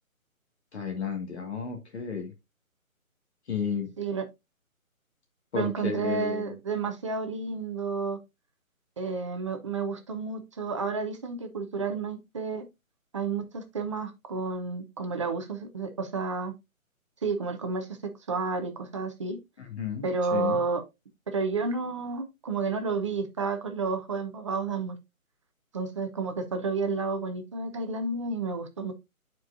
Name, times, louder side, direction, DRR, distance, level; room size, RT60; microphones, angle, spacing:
voice 1, 0.7-2.3 3.5-3.9 5.5-6.5 19.6-20.6, left 6 dB, 50° left, 1.7 m, -32 dB
voice 2, 5.5-8.2 9.0-12.6 13.1-16.5 17.2-19.4 20.0-20.8 21.3-25.0 25.7-28.9, right 4 dB, 20° right, 0.8 m, -31 dB
11.0 x 4.6 x 2.5 m
figure-of-eight pair, 150°, 42 cm